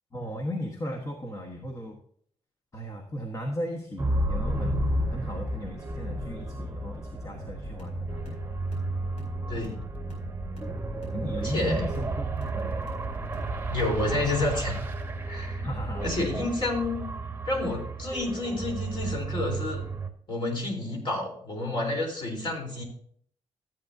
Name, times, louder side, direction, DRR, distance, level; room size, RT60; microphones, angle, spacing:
voice 1, 0.1-2.0 2.7-8.6 11.1-12.7 15.6-16.3, equal, 25° left, 2 dB, 1.3 m, -36 dB
sound 1, 4.0-20.1, right 2 dB, 20° right, 1.1 m, -32 dB
sound 2, 7.3-14.7, equal, 65° left, 4.9 m, -41 dB
voice 2, 9.5-9.9 11.4-11.9 13.7-14.8 15.3-15.6 16.0-17.1 17.5-19.8 20.3-22.8, left 2 dB, 45° left, 0 dB, 3.6 m, -30 dB
14.0 x 8.9 x 2.7 m, 0.63 s
wide cardioid pair, 135°, 11 cm